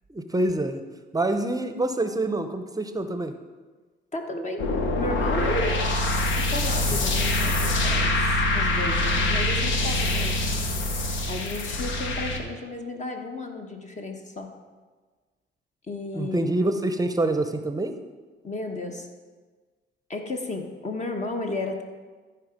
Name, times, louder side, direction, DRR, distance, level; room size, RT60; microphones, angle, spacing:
voice 1, 0.1-0.8 1.1-3.3 16.1-18.0, right 2 dB, 20° right, 8 dB, 0.7 m, -26 dB
voice 2, 4.1-4.6 4.9-5.8 6.3-10.4 11.3-14.5 15.9-16.5 18.4-19.1 20.1-21.8, left 2 dB, 35° left, 3 dB, 1.1 m, -33 dB
sound 1, 4.6-12.4, left 2 dB, 75° left, 1.2 m, -24 dB
14.0 x 4.7 x 5.1 m, 1.4 s
cardioid pair, 90°, 20 cm